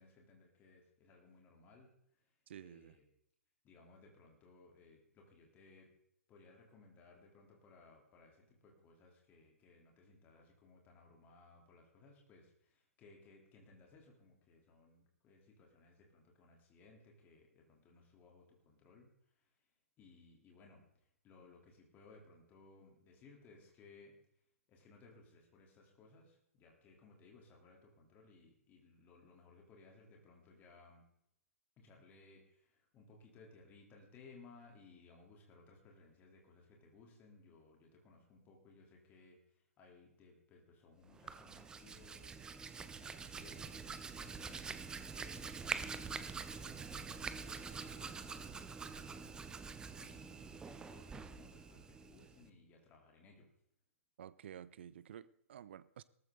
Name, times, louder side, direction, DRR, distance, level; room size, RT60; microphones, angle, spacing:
voice 1, 0.0-3.0 3.6-5.9 6.3-19.1 19.3-19.5 20.0-24.2 24.7-31.0 31.8-42.5 42.8-44.6 44.9-53.5, left 3 dB, 20° left, 3.5 m, -62 dB
voice 2, 2.5-3.0 54.2-56.0, right 10 dB, 50° right, 0.6 m, -52 dB
Hands, 41.1-52.5, right 5 dB, 10° right, 0.8 m, -46 dB
18.0 x 14.5 x 3.9 m
figure-of-eight pair, 120°, 8 cm